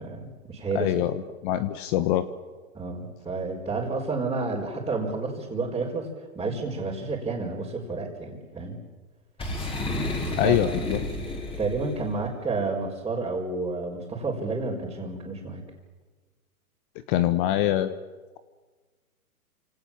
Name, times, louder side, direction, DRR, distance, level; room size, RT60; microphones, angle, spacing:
voice 1, 0.0-0.9 2.7-6.1 6.3-8.8 10.2-10.6 11.6-15.6, right 3 dB, 10° right, -6 dB, 4.7 m, -30 dB
voice 2, 0.7-2.3 10.3-11.0 17.1-18.0, left 12 dB, 35° left, 12 dB, 1.3 m, -24 dB
Boom, 9.4-12.1, left 1 dB, 10° left, 5.2 m, -31 dB
29.0 x 27.0 x 7.4 m, 1.3 s
hypercardioid pair, 130°, 43 cm